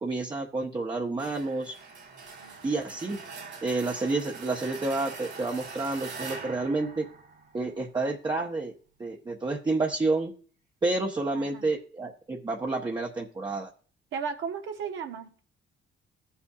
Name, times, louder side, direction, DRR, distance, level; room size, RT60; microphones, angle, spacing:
voice 1, 0.0-1.7 2.6-3.2 3.6-7.0 7.5-8.7 9.0-10.3 10.8-13.7, right 3 dB, 20° right, -1 dB, 0.9 m, -29 dB
sound 1, 1.2-7.9, right 4 dB, 60° right, 2.2 m, -43 dB
voice 2, 11.3-11.7 14.1-15.4, right 6 dB, 75° right, 4 dB, 1.0 m, -35 dB
17.0 x 5.6 x 2.4 m, 0.42 s
cardioid pair, 90°, 20 cm